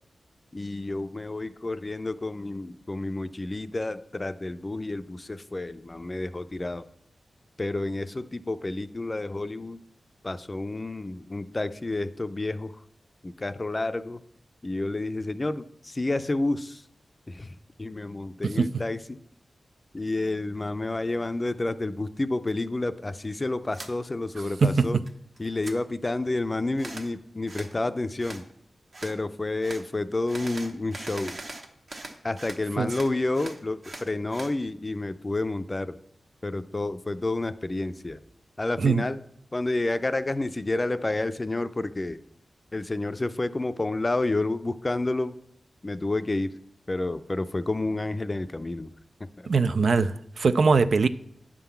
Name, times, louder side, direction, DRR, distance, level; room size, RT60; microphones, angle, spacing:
voice 1, 0.5-6.8 7.6-9.8 10.2-12.7 13.2-14.2 14.6-16.8 17.3-19.2 19.9-25.0 25.4-28.4 29.0-31.4 32.2-36.0 36.4-38.2 38.6-39.2 39.5-42.2 42.7-45.3 45.8-46.5 46.9-48.9 49.2-49.5, left 2 dB, 30° left, 0.4 m, -30 dB
sound 1, 23.7-23.9 24.3-25.1 25.4-25.8 26.8-27.1 27.5-27.7 28.2-28.4 28.9-29.2 29.6-29.8 30.3-32.6 32.9-34.5, right 2 dB, 55° right, 1.1 m, -41 dB
voice 2, 24.6-25.0 32.8-32.9 38.8-39.0 49.5-51.1, right 4 dB, 75° right, 0.4 m, -22 dB
9.8 x 3.8 x 7.0 m
wide cardioid pair, 80°, 0 cm